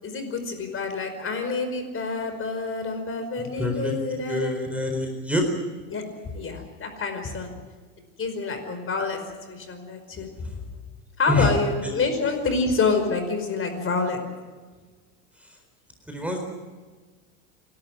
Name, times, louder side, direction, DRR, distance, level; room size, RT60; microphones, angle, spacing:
voice 1, 0.0-4.5 5.9-6.0 6.3-7.5 8.2-9.2 9.5-10.5 11.2-14.2, left 4 dB, 30° left, 7 dB, 5.2 m, -27 dB
voice 2, 3.4-5.4 11.3-11.5 11.8-11.9 16.1-16.4, left 2 dB, 5° right, 3 dB, 4.2 m, -26 dB
27.5 x 12.5 x 10.0 m, 1.4 s
hypercardioid pair, 105°, 44 cm